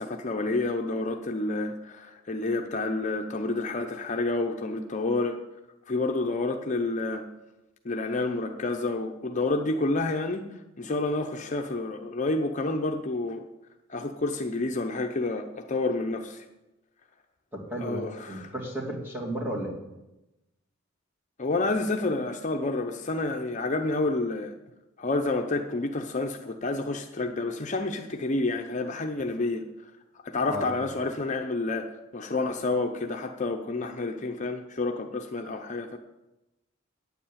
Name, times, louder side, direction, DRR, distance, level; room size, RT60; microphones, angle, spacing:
voice 1, 0.0-5.4 5.9-7.3 7.8-10.5 10.8-13.5 13.9-16.4 17.8-18.5 21.4-24.5 25.0-29.6 30.2-36.0, left 2 dB, 40° left, 4 dB, 0.7 m, -29 dB
voice 2, 17.5-19.8 30.5-30.7, right 1 dB, 10° right, -2 dB, 2.8 m, -34 dB
9.3 x 8.3 x 8.6 m, 0.98 s
head